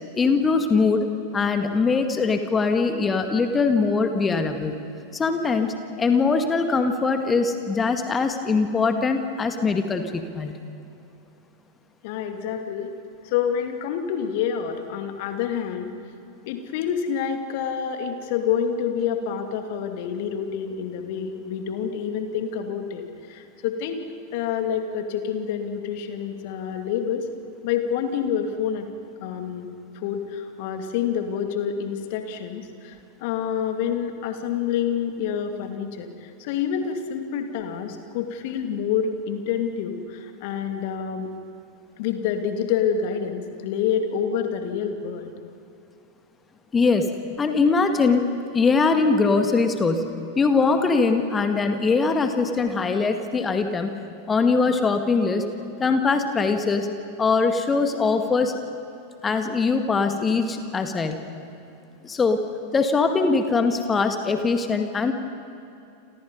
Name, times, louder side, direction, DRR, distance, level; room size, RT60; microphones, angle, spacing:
voice 1, 0.2-4.8 5.1-10.5 46.7-47.1 47.4-54.0 54.3-55.5 55.8-56.9 57.2-58.6 59.2-61.2 62.0-62.4 62.7-65.1, left 4 dB, 15° left, 7 dB, 2.0 m, -22 dB
voice 2, 12.0-12.9 13.2-15.9 16.4-24.1 24.3-27.3 27.6-28.9 29.2-29.7 29.9-41.3 42.0-45.3, left 8 dB, 50° left, 6 dB, 2.5 m, -27 dB
30.0 x 27.0 x 5.4 m, 2.8 s
figure-of-eight pair, 90°, 0 cm